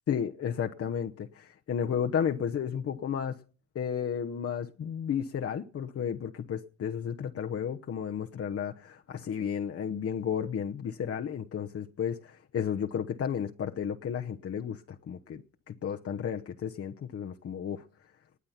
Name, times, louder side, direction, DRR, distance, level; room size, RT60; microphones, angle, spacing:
voice 1, 0.1-3.4 3.7-14.8 15.1-17.8, left 8 dB, 50° left, 1.0 m, -33 dB
19.5 x 8.5 x 5.8 m
cardioid pair, 90°, 30 cm